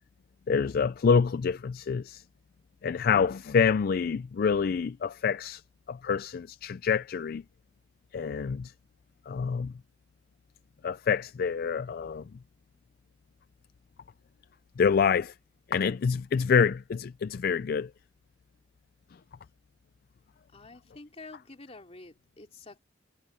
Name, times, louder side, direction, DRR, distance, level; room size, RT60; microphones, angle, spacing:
voice 1, 0.5-2.2 2.8-5.6 5.9-7.4 8.1-8.7 9.3-9.7 10.8-12.3 14.8-15.3 15.7-17.9, left 6 dB, 50° left, 0.4 m, -26 dB
voice 2, 20.5-22.8, left 3 dB, 35° left, 3.1 m, -48 dB
head